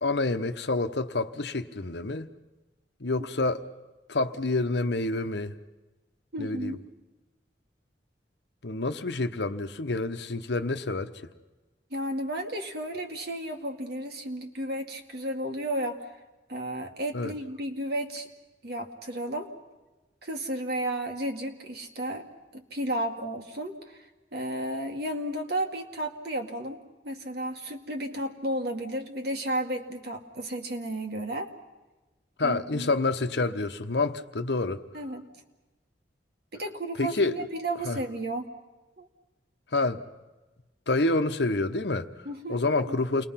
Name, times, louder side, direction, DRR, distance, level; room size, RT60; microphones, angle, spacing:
voice 1, 0.0-2.3 3.0-3.7 4.1-5.6 6.4-6.8 8.6-11.1 17.1-17.3 32.4-34.8 37.0-37.3 37.8-38.0 39.7-40.0 40.9-42.1 42.5-43.3, left 2 dB, 70° left, 1.0 m, -28 dB
voice 2, 6.3-6.8 11.9-16.1 16.5-18.3 18.6-19.5 20.2-22.2 22.5-24.1 24.3-26.8 27.0-31.5 32.4-32.9 34.9-35.2 36.5-38.5 39.0-39.1 42.3-43.0, right 1 dB, 60° right, 2.1 m, -33 dB
29.0 x 21.0 x 5.8 m
head